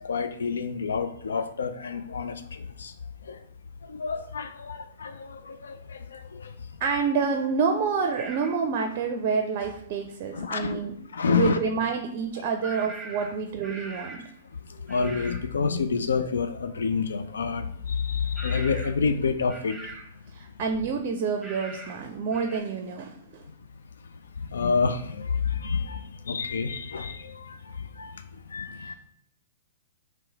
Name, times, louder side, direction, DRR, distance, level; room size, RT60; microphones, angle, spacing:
voice 1, 0.0-2.9 3.3-3.4 3.9-6.5 10.3-10.8 11.1-11.6 14.9-17.6 17.9-19.7 24.5-26.0 26.3-27.6 28.0-28.1 28.5-28.9, left 5 dB, 75° left, 9 dB, 0.3 m, -28 dB
voice 2, 6.8-10.9 11.3-14.2 20.3-23.4 28.8-28.9, right 5 dB, 45° right, 5 dB, 0.5 m, -28 dB
sound 1, 8.1-8.6 12.6-14.3 14.9-15.5 18.4-19.1 19.5-20.1 21.4-22.0 22.3-22.6, right 2 dB, 5° right, 1.0 m, -41 dB
3.0 x 3.0 x 4.5 m, 0.69 s
hypercardioid pair, 115°, 0 cm